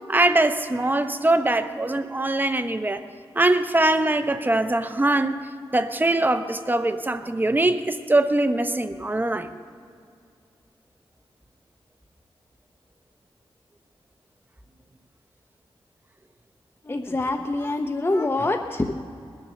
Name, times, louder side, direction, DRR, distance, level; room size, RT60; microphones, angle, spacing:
voice 1, 0.1-3.0 3.3-5.3 5.7-9.5, right 2 dB, 20° right, 9 dB, 0.7 m, -22 dB
voice 2, 16.8-18.9, left 2 dB, 25° left, 6 dB, 0.6 m, -25 dB
20.5 x 7.2 x 6.8 m, 2.4 s
wide cardioid pair, 85°, 10 cm